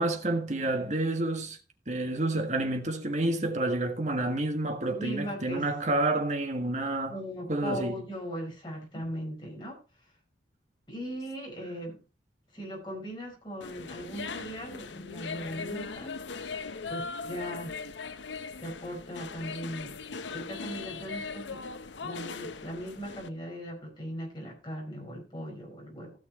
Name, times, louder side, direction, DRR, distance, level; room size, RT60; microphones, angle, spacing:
voice 1, 0.0-1.6 1.9-7.1 7.5-7.9, right 2 dB, 40° right, 1.6 m, -29 dB
voice 2, 4.9-5.7 7.1-9.8 10.9-12.0 12.5-16.1 16.9-17.7 18.6-20.0 20.3-21.7 22.0-26.1, equal, 25° left, 5.1 m, -38 dB
sound 1, 13.6-23.3, left 4 dB, 85° left, 0.8 m, -39 dB
16.0 x 6.2 x 4.2 m
head